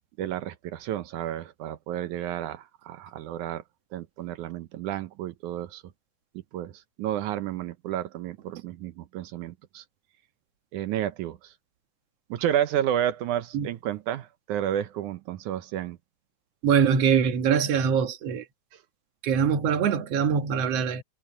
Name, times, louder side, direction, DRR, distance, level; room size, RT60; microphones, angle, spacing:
voice 1, 0.2-3.6 3.9-5.8 6.5-9.8 10.7-11.5 12.3-16.0 18.7-18.8, right 11 dB, 75° right, 1.9 m, -31 dB
voice 2, 16.6-18.4 19.2-21.0, right 7 dB, 55° right, 2.1 m, -23 dB
omnidirectional pair, 4.4 m